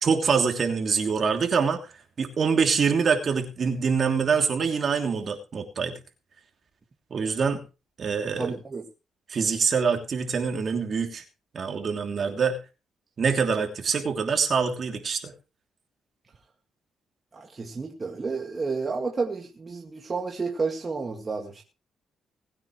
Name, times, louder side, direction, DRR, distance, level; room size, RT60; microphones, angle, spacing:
voice 1, 0.0-1.8 2.2-5.9 7.1-7.6 8.0-8.5 9.3-11.2 11.5-12.6 13.2-15.3, right 5 dB, 45° right, 4 dB, 3.0 m, -25 dB
voice 2, 8.4-8.8 17.3-21.6, right 4 dB, 30° right, 1 dB, 2.1 m, -31 dB
20.0 x 9.4 x 3.2 m, 0.31 s
cardioid pair, 90°, 0 cm